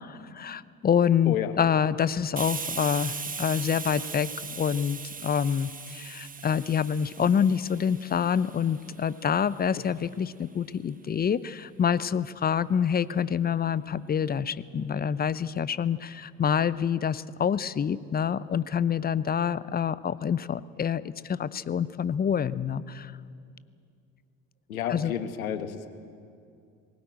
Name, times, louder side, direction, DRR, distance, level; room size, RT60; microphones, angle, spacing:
voice 1, 0.0-4.3 4.6-23.1 24.9-25.1, left 7 dB, 20° left, 18 dB, 0.6 m, -27 dB
Hiss, 2.4-9.8, right 5 dB, 20° right, 1.3 m, -39 dB
voice 2, 24.7-25.9, left 9 dB, 80° left, 10 dB, 1.4 m, -30 dB
21.0 x 18.0 x 9.0 m, 2.4 s
figure-of-eight pair, 60°, 41 cm